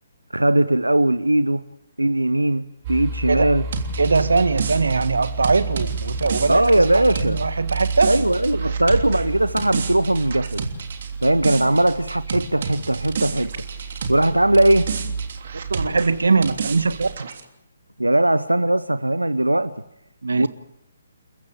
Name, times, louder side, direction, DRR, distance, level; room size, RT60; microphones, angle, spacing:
voice 1, 0.3-1.6 2.0-3.6 6.5-7.4 8.1-10.7 11.2-13.5 14.1-14.9 18.0-19.7 20.4-20.5, right 1 dB, 90° right, 0.8 m, -19 dB
sound 1, 2.8-17.2, right 4 dB, 35° right, 2.9 m, -31 dB
sound 2, 3.7-14.3 14.5-17.4, right 5 dB, 50° right, 3.2 m, -31 dB
voice 2, 4.0-6.6 6.9-8.1 11.6-11.8 15.7-17.1 20.2-20.5, right 4 dB, 70° right, 1.5 m, -21 dB
29.5 x 15.5 x 8.6 m
figure-of-eight pair, 135°, 0 cm